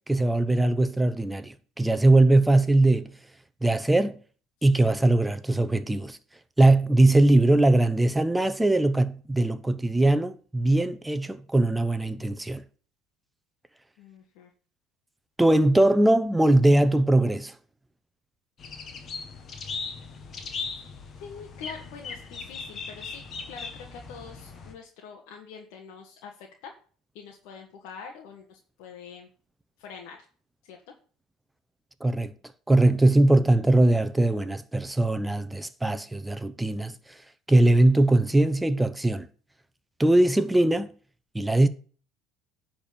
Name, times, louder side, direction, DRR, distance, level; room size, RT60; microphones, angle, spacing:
voice 1, 0.1-3.1 3.6-4.2 4.6-6.2 6.6-12.6 15.4-17.5 32.0-32.3 32.7-36.9 37.5-39.3 40.0-40.9 41.3-41.7, right 2 dB, 10° right, 0.8 m, -21 dB
voice 2, 14.0-14.5 21.2-26.7 27.1-29.3 29.8-30.2 30.6-30.8, left 6 dB, 75° left, 1.7 m, -45 dB
sound 1, 18.6-24.7, left 4 dB, 40° left, 1.8 m, -38 dB
10.5 x 4.4 x 7.1 m
supercardioid pair, 105°, 0 cm